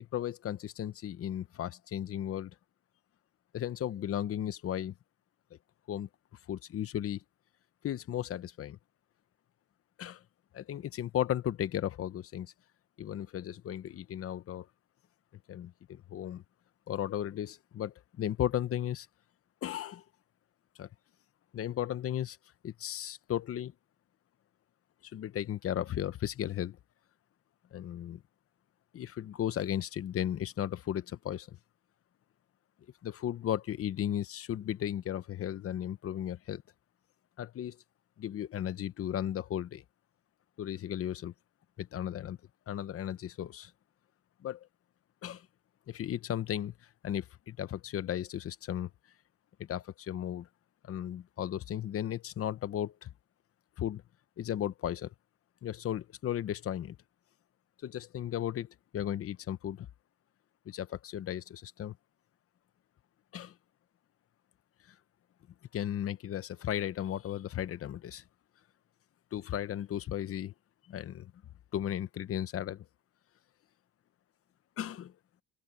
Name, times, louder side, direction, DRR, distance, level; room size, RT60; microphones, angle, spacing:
voice 1, 0.0-2.5 3.5-4.9 5.9-6.1 6.5-7.2 7.8-8.8 10.0-10.2 10.5-12.5 13.0-14.7 15.5-16.4 16.9-19.1 19.6-20.0 20.8-20.9 21.5-22.4 22.6-23.7 25.0-26.8 27.7-28.2 28.9-31.6 33.0-36.6 37.4-37.8 38.2-39.8 40.6-41.3 41.8-42.4 42.7-43.7 44.4-44.7 45.2-45.5 45.9-46.7 47.0-48.9 49.6-50.5 50.8-53.1 53.8-54.0 54.4-55.1 55.6-57.0 57.8-58.7 58.9-59.9 60.7-62.0 63.3-63.5 65.7-68.2 69.3-70.5 70.9-71.3 71.7-72.8 74.8-75.1, left 11 dB, 40° left, 0.9 m, -35 dB
open air
cardioid pair, 140°, 34 cm